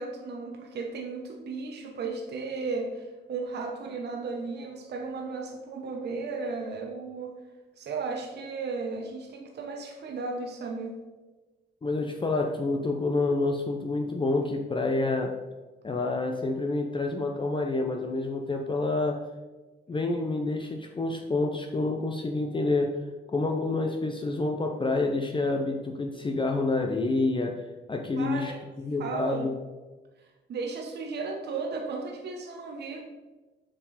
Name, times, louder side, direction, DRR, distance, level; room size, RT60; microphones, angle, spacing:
voice 1, 0.0-7.4 7.8-10.9 19.9-20.0 28.2-28.7 29.0-29.5 30.2-33.0, right 4 dB, 55° right, 1 dB, 1.1 m, -35 dB
voice 2, 11.8-15.3 15.8-19.2 19.9-23.0 23.3-27.6 27.9-28.5 28.8-29.5, left 2 dB, 25° left, 3 dB, 0.7 m, -28 dB
7.5 x 4.5 x 4.2 m, 1.2 s
cardioid pair, 90°, 20 cm